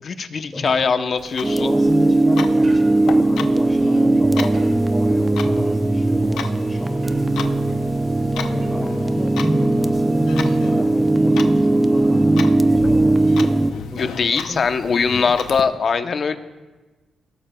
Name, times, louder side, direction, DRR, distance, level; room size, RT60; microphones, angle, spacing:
voice 1, 0.0-1.7 14.0-16.4, left 5 dB, 55° left, 9 dB, 0.8 m, -21 dB
sound 1, 0.7-1.2 2.6-3.1 4.5-5.0 7.0-7.6 8.6-9.1 10.5-10.9, right 2 dB, 60° right, 4.6 m, -38 dB
Clock, 1.2-15.6, left 7 dB, 90° left, 0.6 m, -36 dB
sound 2, 1.4-13.7, right 2 dB, 15° right, 0.6 m, -18 dB
voice 2, 1.6-7.3 8.3-14.6 14.9-15.3, left 2 dB, 20° left, 0 dB, 2.3 m, -32 dB
19.5 x 13.5 x 2.3 m, 1.2 s
cardioid pair, 80°, 0 cm